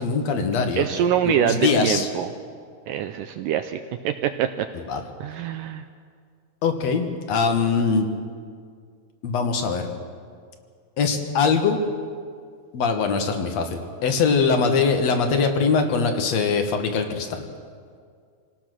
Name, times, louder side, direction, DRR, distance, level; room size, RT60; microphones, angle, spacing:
voice 1, 0.0-0.8 1.2-2.1 4.9-5.0 6.6-8.1 9.2-9.9 11.0-11.8 12.7-17.4, left 5 dB, 55° left, 5 dB, 2.2 m, -22 dB
voice 2, 0.8-2.3 2.9-4.7 5.2-5.8, right 9 dB, 80° right, 8 dB, 2.0 m, -24 dB
27.5 x 18.5 x 6.3 m, 2.1 s
omnidirectional pair, 4.5 m